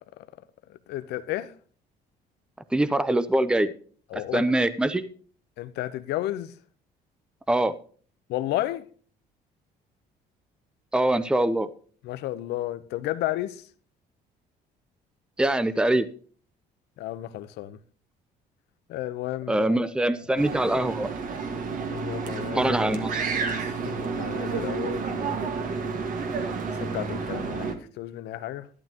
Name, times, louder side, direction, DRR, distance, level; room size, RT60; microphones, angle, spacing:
voice 1, 0.7-1.5 4.1-4.4 5.6-6.6 8.3-8.9 12.0-13.7 17.0-17.8 18.9-20.4 21.9-22.7 23.6-26.0 26.8-28.7, left 14 dB, 80° left, 0.8 m, -33 dB
voice 2, 2.7-3.7 4.3-5.1 7.5-7.7 10.9-11.7 15.4-16.1 19.5-21.1 22.5-23.1, right 1 dB, 5° right, 0.6 m, -23 dB
sound 1, 20.4-27.7, right 5 dB, 55° right, 1.7 m, -30 dB
12.0 x 11.5 x 2.9 m
cardioid pair, 110°, 17 cm